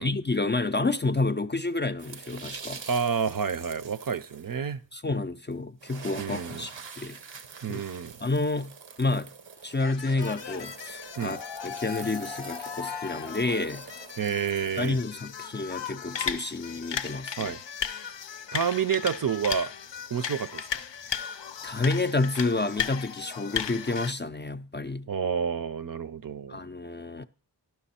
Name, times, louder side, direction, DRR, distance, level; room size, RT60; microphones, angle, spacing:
voice 1, 0.0-2.8 4.9-7.2 7.7-7.8 8.2-8.7 9.0-9.3 9.6-11.4 11.6-13.8 14.8-17.5 21.1-21.2 21.6-25.1 26.5-27.3, left 3 dB, 25° left, 0.4 m, -29 dB
sound 1, 2.0-4.7 5.5-5.6 5.8-14.9, right 6 dB, 85° right, 0.8 m, -45 dB
voice 2, 2.9-4.8 6.2-6.6 7.6-8.1 11.2-11.4 14.2-15.0 17.4-17.6 18.5-19.7 20.1-20.8 25.1-26.6, right 6 dB, 50° right, 0.5 m, -29 dB
sound 2, 9.7-24.1, left 8 dB, 80° left, 0.6 m, -36 dB
11.0 x 5.9 x 4.2 m
wide cardioid pair, 55°, 43 cm